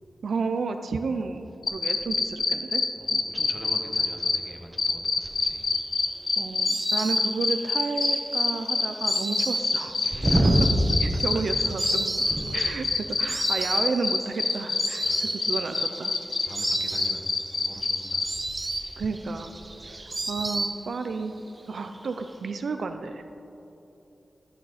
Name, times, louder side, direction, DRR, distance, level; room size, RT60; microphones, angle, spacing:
voice 1, 0.2-2.8 3.1-3.2 6.4-10.3 11.0-12.1 12.5-16.2 19.0-19.5 19.8-21.3 21.7-23.3, right 4 dB, 80° right, 7 dB, 0.5 m, -32 dB
sound 1, 1.6-4.4 4.8-18.2, left 4 dB, 65° left, 0.8 m, -25 dB
voice 2, 3.0-5.7 10.1-10.6 11.8-12.7 15.0-15.3 16.5-18.3, right 1 dB, 15° right, 1 dB, 1.4 m, -31 dB
Insect, 5.5-21.2 21.5-22.3, right 2 dB, 35° right, 0.9 m, -34 dB
12.0 x 11.0 x 4.2 m, 3.0 s
wide cardioid pair, 90°, 0 cm